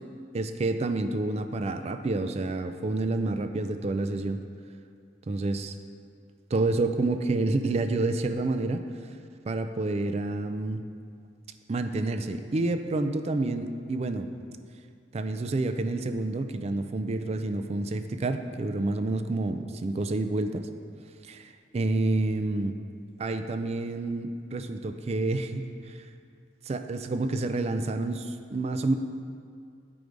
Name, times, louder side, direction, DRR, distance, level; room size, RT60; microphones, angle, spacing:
voice 1, 0.3-4.4 5.3-5.7 6.5-8.8 9.5-10.8 11.7-14.3 15.1-20.7 21.3-22.8 23.2-25.9 26.7-29.0, right 2 dB, 35° right, 8 dB, 0.4 m, -29 dB
9.3 x 4.8 x 5.1 m, 2.3 s
head